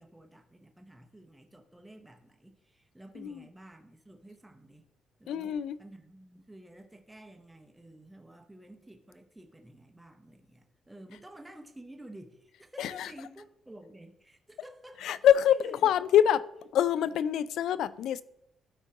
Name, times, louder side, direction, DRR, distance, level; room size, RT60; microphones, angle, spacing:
voice 1, 0.0-4.9 5.2-16.0, right 1 dB, 10° right, 0.9 m, -51 dB
voice 2, 5.3-5.8 12.8-13.1 15.0-16.4 16.7-18.2, left 10 dB, 80° left, 0.3 m, -25 dB
13.0 x 4.5 x 2.9 m
cardioid pair, 90°, 0 cm